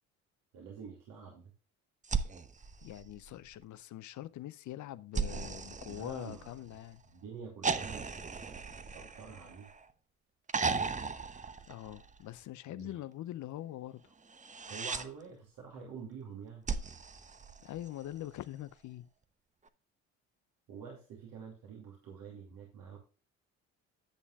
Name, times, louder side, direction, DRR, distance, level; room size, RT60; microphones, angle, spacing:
voice 1, 0.5-1.5 5.7-6.8 7.0-8.1 8.4-9.7 12.7-13.0 14.7-16.9 20.7-23.0, right 6 dB, 65° right, 2.6 m, -48 dB
sound 1, 2.0-3.6 5.1-6.8 7.6-9.9 10.5-12.3 14.3-15.1 16.7-18.1 19.7-19.8, right 5 dB, 20° right, 0.8 m, -37 dB
voice 2, 2.8-7.0 11.7-14.1 17.6-19.1, left 13 dB, 50° left, 0.6 m, -43 dB
10.0 x 8.1 x 2.4 m
hypercardioid pair, 60°, 37 cm